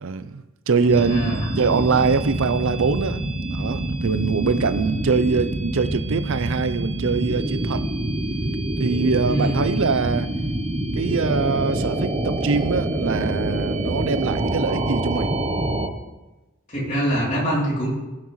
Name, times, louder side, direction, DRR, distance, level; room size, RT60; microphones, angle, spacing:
voice 1, 0.0-3.2 3.5-7.8 8.8-10.3 10.9-15.3, right 4 dB, 60° right, 0.5 m, -23 dB
voice 2, 0.8-1.4 9.3-9.6 16.7-18.0, equal, 35° left, 3.2 m, -24 dB
sound 1, 0.9-15.9, right 1 dB, 30° right, 0.8 m, -26 dB
16.5 x 5.9 x 3.2 m
head